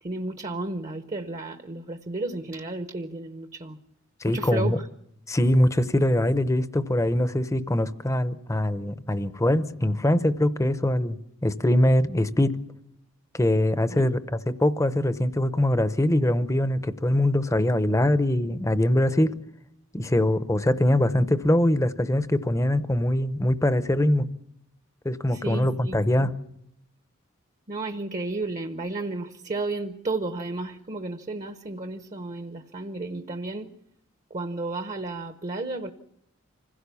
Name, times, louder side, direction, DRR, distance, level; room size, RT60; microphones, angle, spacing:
voice 1, 0.0-3.8 4.3-4.9 13.9-14.1 25.3-26.0 27.7-33.7 34.3-35.9, right 2 dB, 35° right, 8 dB, 0.8 m, -33 dB
voice 2, 4.2-4.8 5.3-12.5 13.3-19.3 19.9-24.3 25.0-26.3, left 1 dB, 15° left, 12 dB, 0.7 m, -23 dB
26.0 x 16.5 x 7.0 m, 0.79 s
head